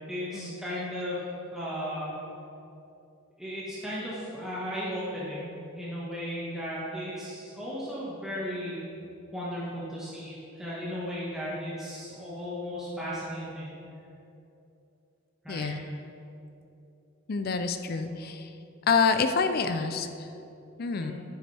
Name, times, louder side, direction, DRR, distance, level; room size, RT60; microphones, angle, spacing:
voice 1, 0.1-1.2 1.5-2.1 3.4-5.5 5.7-8.8 9.3-13.8 15.4-15.7 21.0-21.1, equal, 5° right, -9 dB, 1.5 m, -35 dB
voice 2, 15.5-15.8 17.3-18.5 18.9-20.3 20.8-21.1, left 5 dB, 50° left, 8 dB, 0.4 m, -27 dB
10.5 x 9.4 x 3.4 m, 2.8 s
head